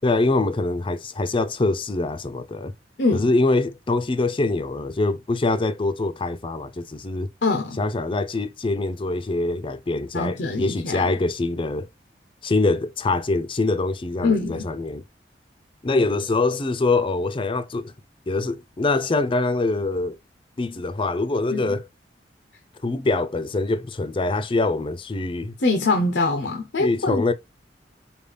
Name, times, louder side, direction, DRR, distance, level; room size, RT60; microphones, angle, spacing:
voice 1, 0.0-2.7 3.1-7.3 7.8-11.9 12.4-15.0 15.8-17.9 18.3-20.1 20.6-21.9 22.8-25.6 26.8-27.3, left 2 dB, 30° left, 0.5 m, -24 dB
voice 2, 3.0-3.3 7.4-7.8 10.1-11.1 14.2-14.7 21.5-21.8 25.6-27.2, left 3 dB, 80° left, 0.7 m, -23 dB
5.2 x 2.3 x 3.3 m
head